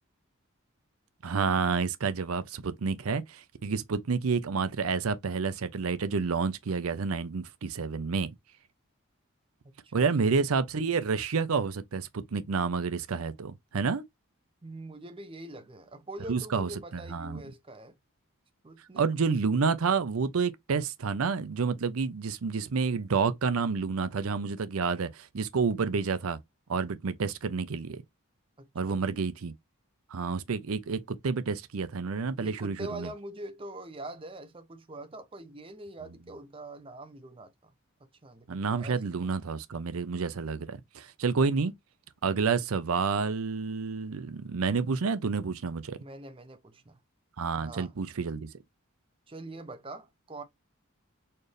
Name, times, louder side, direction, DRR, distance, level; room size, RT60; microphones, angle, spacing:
voice 1, 1.2-8.3 9.9-14.0 16.3-17.4 18.9-26.4 26.7-28.0 28.7-29.5 30.1-33.1 38.5-41.7 42.2-46.0 47.4-48.5, right 5 dB, 85° right, 0.6 m, -29 dB
voice 2, 9.6-10.5 14.6-18.0 18.6-19.0 28.6-29.2 32.3-37.7 38.2-39.3 46.0-47.0 47.5-48.0 49.3-50.4, right 2 dB, 25° right, 0.6 m, -44 dB
4.3 x 2.6 x 3.3 m
head